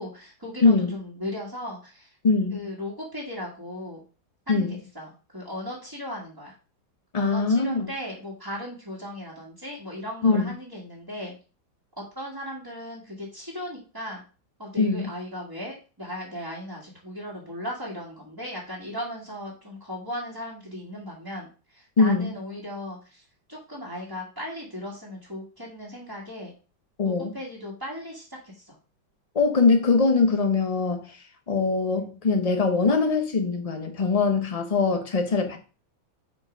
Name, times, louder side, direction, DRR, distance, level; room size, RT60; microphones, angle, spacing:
voice 1, 0.0-2.1 2.5-4.0 4.5-6.5 7.2-11.3 12.0-14.2 14.6-23.2 23.5-26.5 27.0-28.7, left 1 dB, 10° right, 1.4 m, -37 dB
voice 2, 0.6-1.0 2.2-2.6 4.5-4.8 7.1-7.9 10.2-10.5 14.8-15.1 22.0-22.3 27.0-27.3 29.3-31.2 31.5-35.6, left 4 dB, 65° left, 0.3 m, -22 dB
4.6 x 4.5 x 6.0 m
omnidirectional pair, 2.1 m